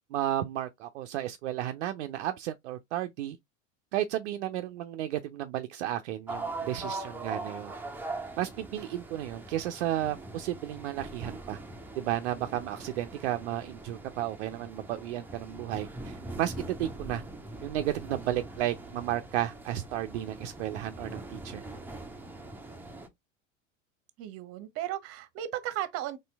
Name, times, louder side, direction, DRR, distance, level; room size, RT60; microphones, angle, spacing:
voice 1, 0.1-3.4 3.9-7.7 8.4-11.6 12.0-16.5 16.8-17.2 17.6-21.6, right 12 dB, 60° right, 0.5 m, -33 dB
sound 1, 6.3-23.1, right 2 dB, 5° right, 0.7 m, -42 dB
voice 2, 24.2-26.2, right 13 dB, 35° right, 0.9 m, -35 dB
4.3 x 3.2 x 3.3 m
figure-of-eight pair, 85°, 39 cm